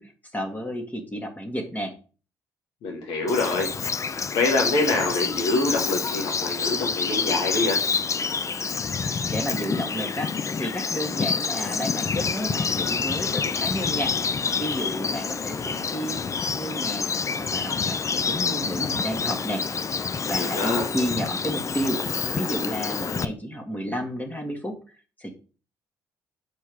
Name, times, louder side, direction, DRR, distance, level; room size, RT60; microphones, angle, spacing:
voice 1, 0.0-1.9 9.1-10.3 10.6-17.1 17.4-19.6 20.2-22.0 22.4-24.8 25.2-25.3, equal, 20° left, 2 dB, 1.8 m, -31 dB
voice 2, 2.8-4.0 4.3-7.8 20.3-20.9, left 2 dB, 70° left, 1 dB, 1.7 m, -25 dB
Bird vocalization bird call bird song, 3.3-23.2, left 5 dB, 35° left, 0.5 m, -27 dB
6.2 x 4.5 x 5.1 m, 0.36 s
hypercardioid pair, 45°, 9 cm